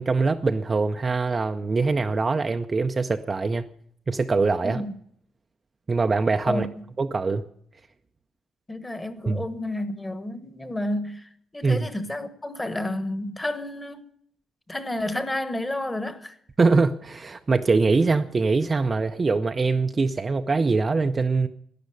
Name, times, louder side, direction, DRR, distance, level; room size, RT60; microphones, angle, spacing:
voice 1, 0.0-3.7 4.1-4.8 5.9-6.7 7.0-7.4 9.3-9.4 11.6-11.9 16.6-21.5, right 4 dB, 25° right, 0.6 m, -23 dB
voice 2, 4.6-4.9 6.5-6.6 8.7-11.3 11.5-14.0 14.7-16.3, left 1 dB, 10° left, 1.2 m, -30 dB
12.0 x 10.5 x 9.8 m
cardioid pair, 145°, 0 cm